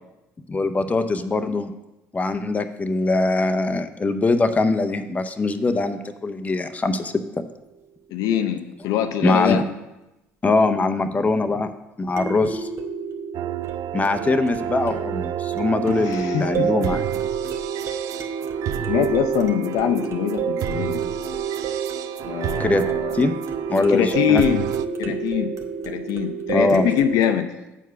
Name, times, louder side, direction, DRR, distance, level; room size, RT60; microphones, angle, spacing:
voice 1, 0.5-1.7 2.1-7.1 9.2-9.6 10.4-11.7 12.0-12.7 13.9-17.0 22.6-22.8 23.1-23.4 23.7-24.4 26.5-26.9, left 3 dB, 25° left, 8 dB, 0.6 m, -22 dB
sound 1, 7.5-7.6 12.2-27.3, right 6 dB, 45° right, 1.0 m, -30 dB
voice 2, 8.1-9.6 15.8-16.9 18.9-21.0 22.2-23.1 23.8-24.7 25.0-25.5 25.8-27.5, left 10 dB, 70° left, 6 dB, 0.6 m, -23 dB
sound 2, 13.3-24.9, right 12 dB, 65° right, 0.3 m, -29 dB
8.0 x 4.7 x 5.7 m, 0.99 s
hypercardioid pair, 60°, 6 cm